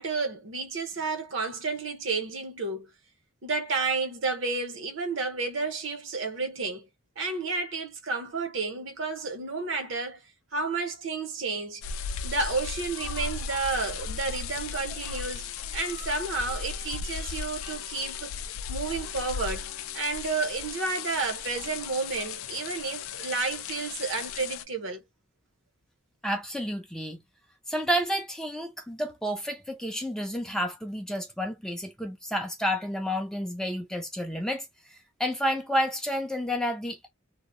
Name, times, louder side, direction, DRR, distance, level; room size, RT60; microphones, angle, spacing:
voice 1, 0.0-2.9 3.4-6.9 7.2-10.2 10.5-11.8 12.2-18.4 18.7-19.7 19.9-25.0, right 3 dB, 60° right, 0.7 m, -31 dB
sound 1, 11.8-24.6, left 6 dB, 75° left, 0.4 m, -36 dB
voice 2, 26.2-27.2 27.7-37.1, equal, ahead, 0.4 m, -30 dB
2.7 x 2.0 x 2.5 m
head